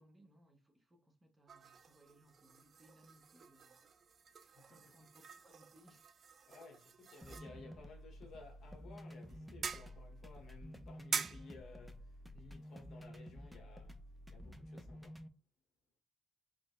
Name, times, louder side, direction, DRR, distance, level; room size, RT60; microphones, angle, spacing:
voice 1, 0.0-3.9 4.7-6.4, equal, 20° right, 1.2 m, -66 dB
sound 1, 1.5-14.5, right 6 dB, 50° right, 0.4 m, -48 dB
voice 2, 4.4-4.8 6.5-15.3, left 3 dB, 65° left, 1.2 m, -57 dB
sound 2, 7.2-15.3, equal, 5° right, 0.7 m, -52 dB
3.7 x 3.6 x 2.6 m
cardioid pair, 90°, 0 cm